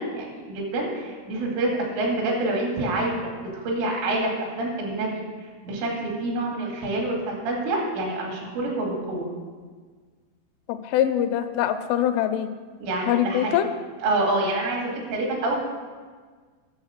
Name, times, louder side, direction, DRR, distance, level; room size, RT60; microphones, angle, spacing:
voice 1, 0.0-1.7 2.0-3.3 3.6-5.2 5.6-9.3 12.8-13.6 14.0-15.6, right 2 dB, 75° right, -1 dB, 4.9 m, -27 dB
voice 2, 10.7-12.5 13.1-13.7, left 11 dB, 85° left, 9 dB, 3.1 m, -23 dB
11.5 x 6.8 x 6.5 m, 1.5 s
omnidirectional pair, 5.7 m